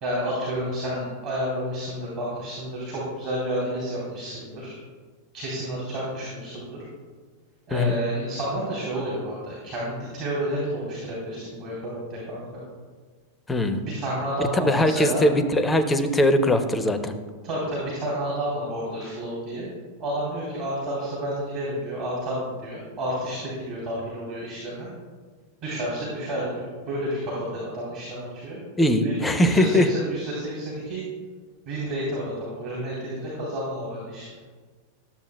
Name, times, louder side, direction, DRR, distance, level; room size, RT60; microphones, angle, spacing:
voice 1, 0.0-4.8 5.3-6.8 7.7-12.6 13.9-15.3 17.4-19.7 20.0-24.9 25.6-28.6 29.0-31.1 31.7-34.3, right 1 dB, 40° right, -5 dB, 2.2 m, -30 dB
voice 2, 13.5-13.8 14.5-17.1 28.8-29.9, left 1 dB, 10° left, 9 dB, 0.6 m, -21 dB
12.0 x 7.1 x 2.3 m, 1.5 s
figure-of-eight pair, 90°, 0 cm